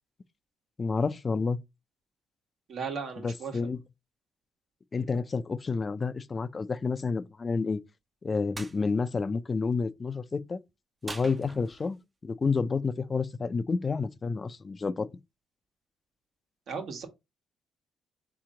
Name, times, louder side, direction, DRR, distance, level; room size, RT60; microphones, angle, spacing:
voice 1, 0.8-1.6 3.2-3.8 4.9-7.8 8.2-10.6 11.0-12.0 12.2-15.1, left 4 dB, 30° left, 0.4 m, -29 dB
voice 2, 2.7-3.6 16.7-17.1, right 5 dB, 65° right, 1.3 m, -36 dB
sound 1, 8.5-8.8 11.0-12.0, right 2 dB, 25° right, 0.6 m, -42 dB
4.2 x 2.9 x 3.7 m
cardioid pair, 90°, 0 cm